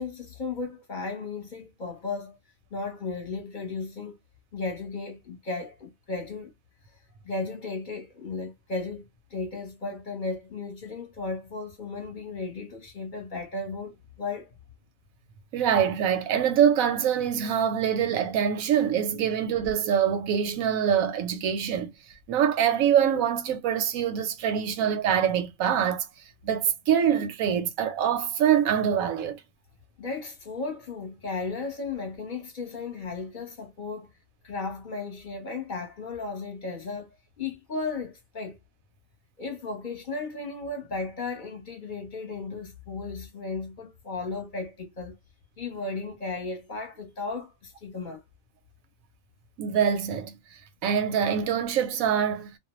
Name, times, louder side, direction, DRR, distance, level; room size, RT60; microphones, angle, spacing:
voice 1, 0.0-2.4 2.7-4.2 4.5-6.5 7.2-9.0 9.3-14.5 30.0-34.1 34.4-38.6 39.4-45.2 45.6-48.2, left 3 dB, 40° left, 0.9 m, -35 dB
voice 2, 15.5-21.9 22.3-26.0 26.4-29.4 49.6-50.3 50.8-52.5, right 8 dB, 85° right, 1.0 m, -24 dB
2.4 x 2.1 x 3.0 m
omnidirectional pair, 1.4 m